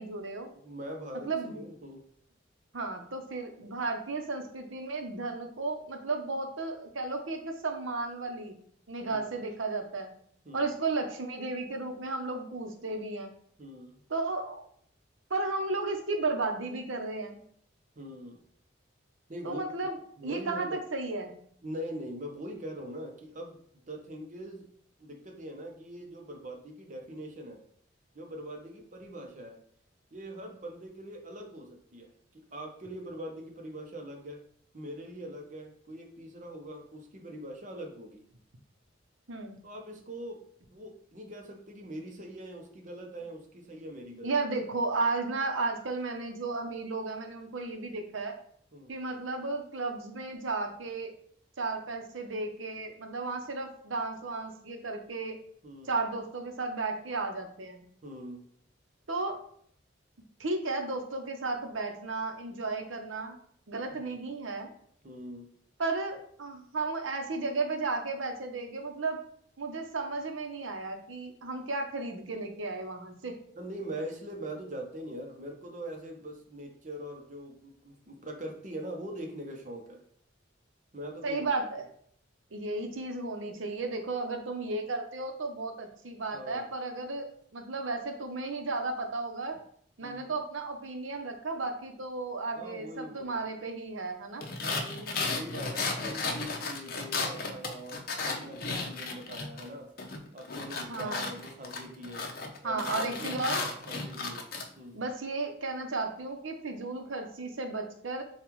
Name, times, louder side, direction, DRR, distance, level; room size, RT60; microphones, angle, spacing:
voice 1, 0.0-0.5 1.2-1.6 2.7-8.5 8.9-10.1 10.5-13.3 14.1-14.6 15.3-17.4 19.4-20.0 20.2-21.3 39.3-39.6 44.2-48.3 48.9-51.1 51.6-55.4 55.9-57.8 59.1-59.4 60.4-63.4 63.7-64.7 65.8-69.2 69.6-73.4 81.2-81.8 82.5-89.6 90.0-94.4 100.9-101.3 102.6-103.6 104.9-108.2, right 3 dB, 90° right, 4 dB, 0.8 m, -34 dB
voice 2, 0.6-2.0 9.1-9.3 10.4-10.7 13.6-14.0 18.0-18.4 19.3-19.9 20.2-20.8 21.6-23.6 23.9-24.7 25.0-27.6 28.1-29.6 30.1-34.4 34.7-38.2 39.6-44.3 48.7-49.0 55.6-55.9 58.0-58.5 63.9-64.2 65.0-65.5 73.6-80.0 80.9-81.5 86.3-86.7 90.0-90.3 92.6-93.4 94.6-99.9 100.3-102.3 102.6-104.5 104.8-105.0, right 1 dB, 40° right, 3 dB, 0.7 m, -42 dB
sound 1, 94.4-99.7 100.0-104.7, left 3 dB, 50° left, 0.6 m, -34 dB
7.0 x 2.4 x 3.1 m, 0.63 s
head